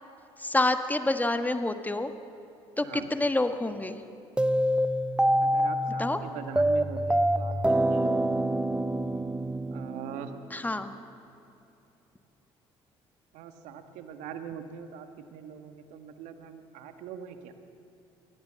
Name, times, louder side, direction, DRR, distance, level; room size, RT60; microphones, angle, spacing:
voice 1, 0.4-2.1 2.8-4.0 6.0-6.2 10.5-10.9, left 2 dB, 15° left, 8 dB, 1.5 m, -27 dB
sound 1, 4.4-10.5, right 1 dB, 10° right, 0.9 m, -26 dB
voice 2, 5.4-8.4 9.7-10.3 13.3-17.5, right 8 dB, 70° right, 7 dB, 1.7 m, -42 dB
23.0 x 17.0 x 7.6 m, 2.9 s
hypercardioid pair, 60°, 13 cm